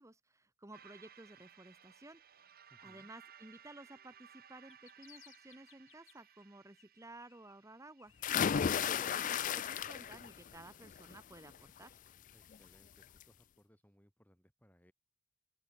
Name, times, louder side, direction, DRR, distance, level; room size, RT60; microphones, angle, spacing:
voice 1, 0.0-12.0, right 2 dB, 15° right, 1.2 m, -55 dB
sound 1, 0.7-9.2, right 8 dB, 50° right, 2.7 m, -61 dB
voice 2, 2.7-3.1 12.3-14.9, equal, 10° left, 7.7 m, -67 dB
sound 2, 4.5-6.5 6.8-7.7 8.0-10.4, left 13 dB, 70° left, 5.1 m, -65 dB
sound 3, 8.2-10.3 10.7-11.1 12.5-12.6 13.0-13.1, left 8 dB, 40° left, 0.4 m, -33 dB
open air
head